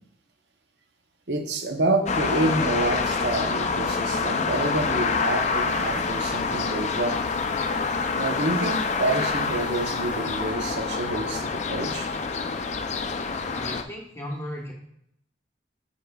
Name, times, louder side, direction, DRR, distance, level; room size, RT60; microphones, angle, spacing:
voice 1, 1.3-7.2 8.2-12.1, right 2 dB, 75° right, 4 dB, 0.8 m, -28 dB
sound 1, 2.1-13.8, left 4 dB, 40° left, 0.4 m, -27 dB
sound 2, 4.3-10.5, right 1 dB, 30° right, 1.1 m, -47 dB
voice 2, 13.5-14.7, equal, 15° left, -2 dB, 1.2 m, -36 dB
8.0 x 5.4 x 2.3 m, 0.72 s
head